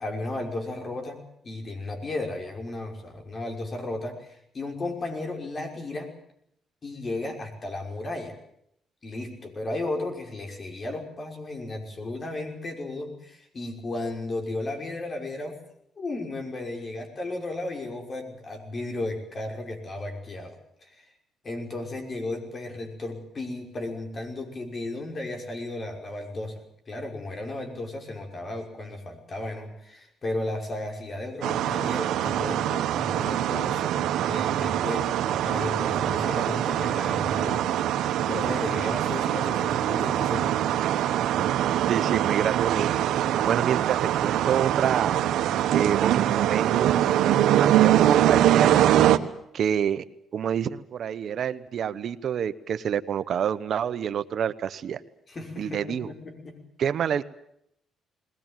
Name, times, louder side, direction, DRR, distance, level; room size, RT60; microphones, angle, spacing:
voice 1, 0.0-6.2 6.8-8.4 9.0-15.6 16.0-21.1 21.4-34.0 34.3-37.7 38.3-40.6 55.3-56.6, left 2 dB, 40° left, 4 dB, 5.9 m, -34 dB
sound 1, 31.4-49.2, right 12 dB, 80° right, 1.2 m, -23 dB
voice 2, 41.9-42.9 43.5-45.1 45.7-46.9 47.6-48.9 49.5-50.0 50.3-55.0 55.6-56.1 56.8-57.2, right 8 dB, 60° right, 14 dB, 0.9 m, -27 dB
21.0 x 19.0 x 9.1 m, 0.73 s
cardioid pair, 90°, 0 cm